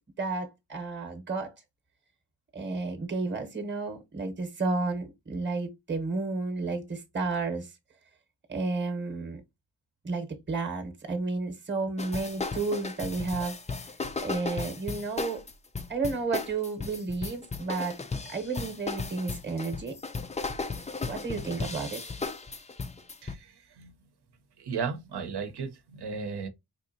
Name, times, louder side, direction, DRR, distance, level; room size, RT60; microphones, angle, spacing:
voice 1, 0.2-1.5 2.5-7.7 8.5-9.4 10.0-13.6 14.2-15.5 15.9-18.0 18.3-20.0 21.1-22.0, right 3 dB, 25° right, 0.9 m, -32 dB
sound 1, 12.0-23.3, left 4 dB, 20° left, 0.4 m, -35 dB
voice 2, 23.2-23.9 24.6-26.5, right 5 dB, 70° right, 0.8 m, -35 dB
4.2 x 2.8 x 2.6 m
cardioid pair, 75°, 41 cm